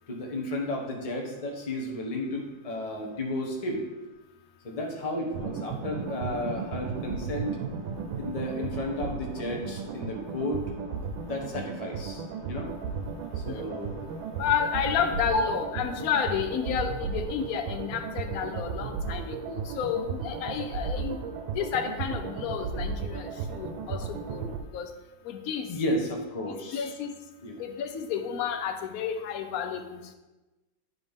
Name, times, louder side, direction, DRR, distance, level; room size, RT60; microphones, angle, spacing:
voice 1, 0.1-3.8 4.6-7.6 8.2-10.6 11.2-12.7 13.3-14.0 15.3-15.4 23.5-23.9 25.7-26.9 27.4-27.6, left 1 dB, 30° left, 0 dB, 0.7 m, -33 dB
sound 1, 5.3-24.6, right 5 dB, 85° right, 1.4 m, -35 dB
voice 2, 14.4-21.2 21.6-24.9 25.3-25.7 26.7-27.1 27.6-30.0, left 8 dB, 65° left, 6 dB, 0.9 m, -31 dB
9.5 x 4.0 x 3.5 m, 1.1 s
omnidirectional pair, 2.1 m